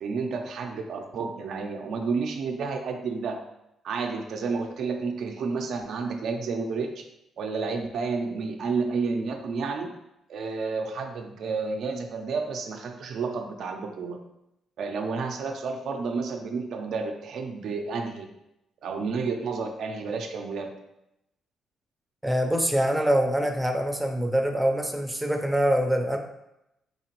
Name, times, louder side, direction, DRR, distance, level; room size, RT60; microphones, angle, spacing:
voice 1, 0.0-3.4 3.8-7.0 7.4-9.9 10.3-14.2 14.8-18.3 18.8-20.7, right 4 dB, 70° right, 4 dB, 0.5 m, -30 dB
voice 2, 22.2-26.2, equal, 5° right, 4 dB, 0.5 m, -24 dB
4.1 x 2.8 x 2.9 m, 0.86 s
cardioid pair, 90°, 0 cm